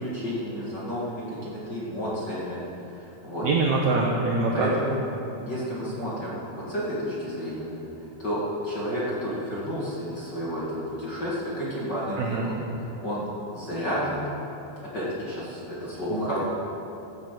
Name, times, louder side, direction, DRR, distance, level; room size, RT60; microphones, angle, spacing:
voice 1, 0.0-2.6 3.0-3.5 4.5-5.0 5.4-7.8 8.2-13.2 13.5-14.3 14.9-16.4, equal, 35° left, -8 dB, 1.9 m, -31 dB
voice 2, 3.4-4.7 12.2-12.4 16.1-16.4, right 3 dB, 80° right, -1 dB, 1.7 m, -24 dB
15.0 x 5.8 x 7.6 m, 2.8 s
omnidirectional pair, 4.7 m